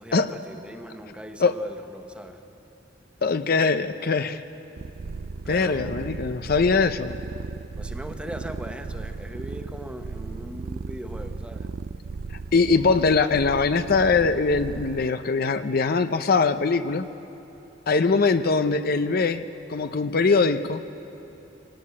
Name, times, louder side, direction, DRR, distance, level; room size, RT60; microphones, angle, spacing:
voice 1, 0.0-2.4 5.4-6.0 7.8-11.7, equal, 5° right, 6 dB, 1.1 m, -40 dB
voice 2, 3.2-4.4 5.5-7.2 12.5-17.1 17.9-20.8, left 4 dB, 55° left, 10 dB, 0.6 m, -22 dB
sound 1, 4.8-15.1, right 4 dB, 55° right, 0.5 m, -36 dB
22.0 x 18.5 x 9.6 m, 3.0 s
head